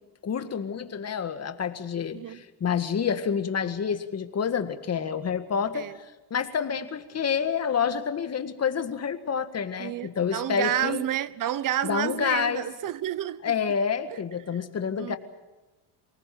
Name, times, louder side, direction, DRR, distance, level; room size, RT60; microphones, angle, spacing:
voice 1, 0.2-11.0 11.8-12.7 13.4-15.2, left 7 dB, 30° left, 1.9 m, -28 dB
voice 2, 9.8-13.5 14.1-14.2 15.0-15.2, right 12 dB, 40° right, 0.9 m, -30 dB
24.5 x 19.0 x 7.8 m
supercardioid pair, 105°, 48 cm